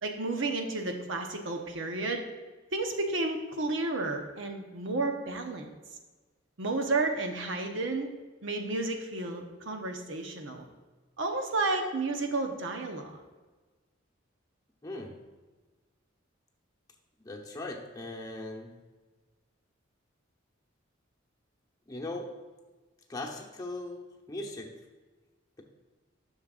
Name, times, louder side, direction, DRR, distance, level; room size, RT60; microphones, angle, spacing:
voice 1, 0.0-2.2 2.7-5.7 6.6-8.1 8.4-10.7 11.2-13.2, right 2 dB, 70° right, 3 dB, 0.9 m, -32 dB
voice 2, 14.8-15.2 17.2-18.7 21.9-22.3 23.1-24.8, left 2 dB, 20° left, -1 dB, 0.9 m, -39 dB
11.0 x 6.5 x 2.4 m, 1.3 s
head